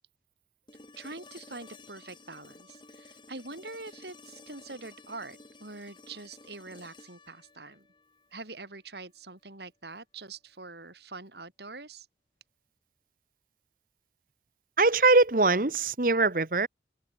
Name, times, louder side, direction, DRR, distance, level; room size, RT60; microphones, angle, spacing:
sound 1, 0.7-8.7 10.9-11.0, left 3 dB, 25° left, 5.1 m, -53 dB
voice 1, 1.0-7.9 8.3-12.1, right 3 dB, 70° right, 4.8 m, -44 dB
voice 2, 14.8-16.7, right 3 dB, 50° right, 1.3 m, -22 dB
open air
head